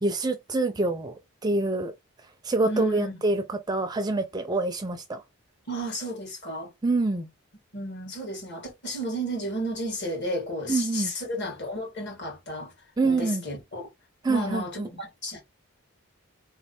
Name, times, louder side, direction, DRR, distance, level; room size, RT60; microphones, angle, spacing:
voice 1, 0.0-1.9 2.4-5.2 6.8-7.3 10.7-11.1 13.0-13.4 14.2-14.9, right 2 dB, 20° right, 0.4 m, -26 dB
voice 2, 2.6-3.2 5.7-6.7 7.7-12.7 13.0-13.8 14.3-15.4, equal, 50° left, 1.7 m, -32 dB
3.8 x 3.1 x 4.1 m
head